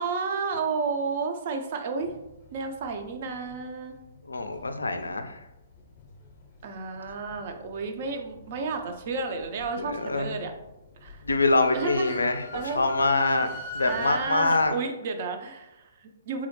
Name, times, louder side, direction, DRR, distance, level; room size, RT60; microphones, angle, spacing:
voice 1, 0.0-2.1 2.5-4.0 6.6-10.5 11.0-11.2 11.7-12.2 12.5-13.0 13.8-16.5, right 4 dB, 45° right, 5 dB, 0.4 m, -32 dB
sound 1, 2.0-5.2 5.7-6.6 7.0-10.7 11.0-14.7, left 3 dB, 35° left, 0.6 m, -42 dB
voice 2, 4.3-5.4 9.8-10.3 11.2-13.5 13.7-14.8, left 2 dB, 80° left, 7 dB, 0.3 m, -25 dB
3.6 x 2.0 x 3.0 m, 0.93 s
figure-of-eight pair, 125°, 0 cm